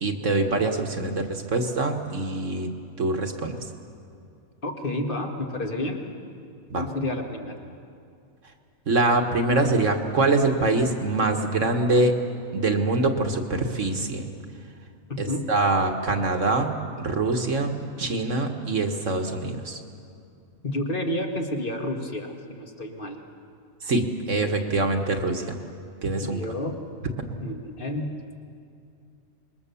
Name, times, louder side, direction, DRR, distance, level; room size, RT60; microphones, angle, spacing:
voice 1, 0.0-2.7 3.0-3.6 6.7-6.9 8.9-12.1 12.5-14.3 15.2-19.8 23.8-25.6 26.0-26.4, right 2 dB, 55° right, 4 dB, 1.7 m, -24 dB
voice 2, 4.6-6.0 6.8-7.6 15.1-15.5 20.6-23.2 26.2-26.8 27.4-28.1, left 1 dB, 35° left, 3 dB, 1.9 m, -30 dB
26.0 x 21.5 x 7.0 m, 2.5 s
omnidirectional pair, 1.6 m